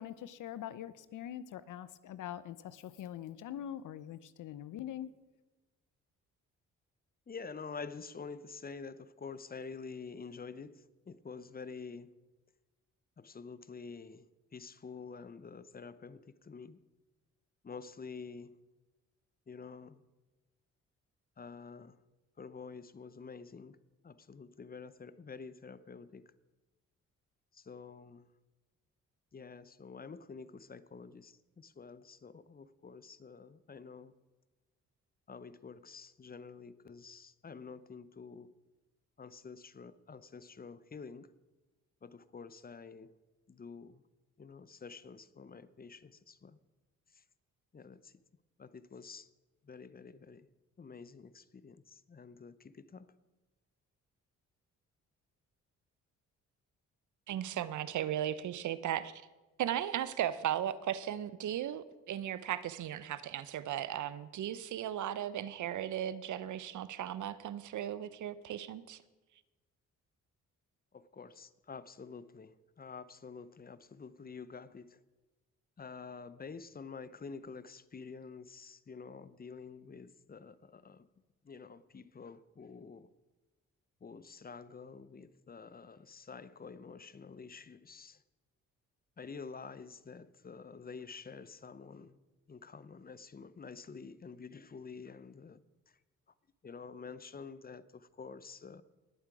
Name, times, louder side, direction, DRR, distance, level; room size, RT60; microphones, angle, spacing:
voice 1, 0.0-5.1, left 11 dB, 70° left, 0.7 m, -43 dB
voice 2, 7.3-12.1 13.2-16.8 17.6-18.6 19.5-20.0 21.4-22.0 22.4-23.8 24.0-26.3 27.5-28.3 29.3-34.2 35.3-38.5 39.2-41.3 42.0-43.1 43.5-44.0 44.4-46.6 47.1-47.2 47.7-48.1 48.6-49.3 49.6-50.5 50.8-53.1 70.9-75.0 75.8-81.1 81.4-83.1 84.0-88.2 89.2-92.2 92.5-95.6 96.6-98.8, left 5 dB, 30° left, 0.7 m, -48 dB
voice 3, 57.3-59.3 59.6-69.0, right 11 dB, 65° right, 0.7 m, -36 dB
19.5 x 7.5 x 4.8 m
supercardioid pair, 65°, 32 cm